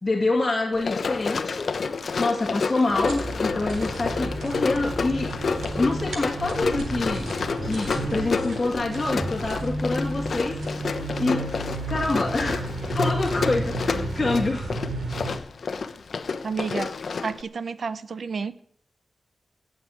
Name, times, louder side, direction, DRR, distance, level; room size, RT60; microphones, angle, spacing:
voice 1, 0.0-1.7 2.2-5.3 5.8-7.3 7.6-11.5 11.9-14.7, left 2 dB, 25° left, -1 dB, 2.3 m, -26 dB
Run, 0.7-17.4, left 5 dB, 60° left, 1.0 m, -30 dB
sound 1, 2.9-15.4, right 2 dB, 90° right, 4.0 m, -32 dB
voice 2, 16.4-16.9 17.2-18.6, right 5 dB, 60° right, 15 dB, 0.9 m, -30 dB
17.5 x 7.4 x 8.7 m, 0.63 s
wide cardioid pair, 125°, 0 cm